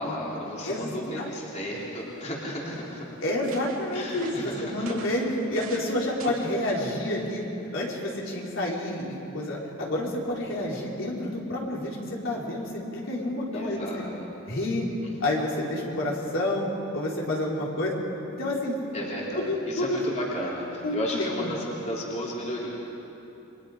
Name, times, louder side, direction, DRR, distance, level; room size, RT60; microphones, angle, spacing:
voice 1, 0.0-3.0 3.9-4.6 13.5-14.0 15.0-15.1 18.9-22.7, equal, 35° left, -4 dB, 3.3 m, -33 dB
voice 2, 0.6-1.3 3.2-7.4 7.7-13.9 14.5-14.9 15.2-17.9 18.3-18.8 19.5-20.1 20.8-21.6, left 1 dB, 65° left, -4 dB, 4.1 m, -29 dB
sound 1, 1.7-2.2 2.8-2.9 3.2-5.9 6.2-6.6 7.4-7.6, right 4 dB, 75° right, 2.9 m, -45 dB
29.5 x 24.0 x 5.1 m, 3.0 s
head